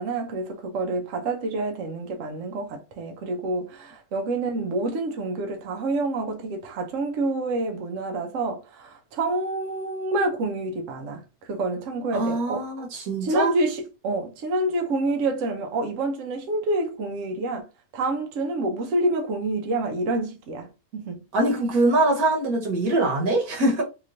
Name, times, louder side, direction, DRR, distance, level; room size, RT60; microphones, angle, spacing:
voice 1, 0.0-12.7 13.2-17.7 17.9-21.2, right 2 dB, 70° right, 1.0 m, -28 dB
voice 2, 12.1-13.5 21.3-23.8, right 2 dB, 85° right, 1.5 m, -23 dB
3.1 x 2.9 x 2.5 m
omnidirectional pair, 1.5 m